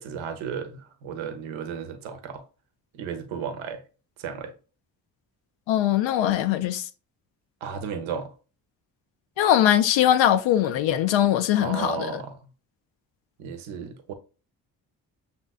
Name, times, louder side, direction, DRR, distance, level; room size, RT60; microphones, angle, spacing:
voice 1, 0.0-2.4 2.9-3.8 4.2-4.5 7.6-8.3 11.6-12.4 13.4-14.1, right 7 dB, 75° right, 0.8 m, -34 dB
voice 2, 5.7-6.9 9.4-12.1, left 11 dB, 70° left, 0.5 m, -21 dB
6.2 x 2.8 x 2.3 m
hypercardioid pair, 45°, 47 cm